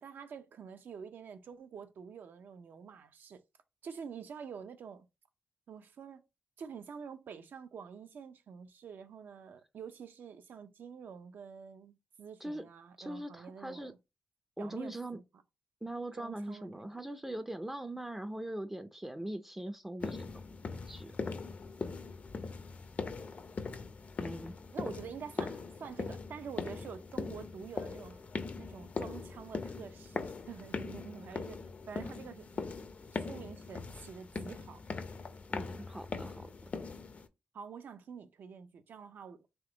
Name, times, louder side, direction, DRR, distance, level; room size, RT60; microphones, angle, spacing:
voice 1, 0.0-3.4 3.8-5.1 5.7-6.2 6.6-14.0 14.6-15.2 16.2-16.9 24.7-28.2 28.6-31.6 31.9-32.8 33.1-34.8 37.5-39.5, right 6 dB, 65° right, 0.6 m, -47 dB
voice 2, 13.0-13.9 14.6-15.2 15.8-20.3 20.9-21.1 24.2-24.6 35.5-36.5, right 1 dB, 10° right, 0.4 m, -41 dB
sound 1, 20.0-37.3, left 4 dB, 45° left, 0.5 m, -41 dB
3.5 x 2.9 x 3.8 m
cardioid pair, 90°, 4 cm